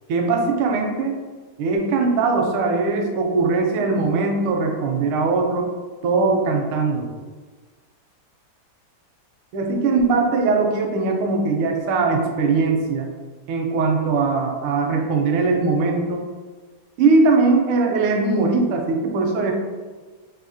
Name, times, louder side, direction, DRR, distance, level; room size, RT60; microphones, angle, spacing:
voice 1, 0.1-1.2 1.6-5.7 6.0-7.1 9.5-13.1 13.5-16.2 17.0-19.5, right 3 dB, 85° right, 2 dB, 1.4 m, -20 dB
4.1 x 2.6 x 2.6 m, 1.4 s
omnidirectional pair, 2.3 m